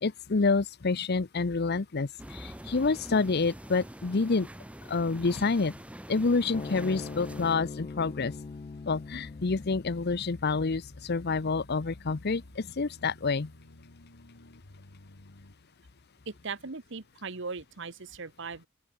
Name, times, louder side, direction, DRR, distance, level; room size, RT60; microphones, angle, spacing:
voice 1, 0.0-4.5 4.9-5.7 6.1-8.3 8.9-13.5, left 4 dB, 55° left, 0.7 m, -28 dB
sound 1, 2.2-7.5, right 1 dB, 5° right, 0.8 m, -45 dB
sound 2, 6.5-13.2, left 4 dB, 30° left, 0.3 m, -43 dB
sound 3, 9.0-15.6, left 1 dB, 80° left, 1.9 m, -53 dB
voice 2, 16.3-18.7, right 4 dB, 65° right, 1.3 m, -39 dB
open air
head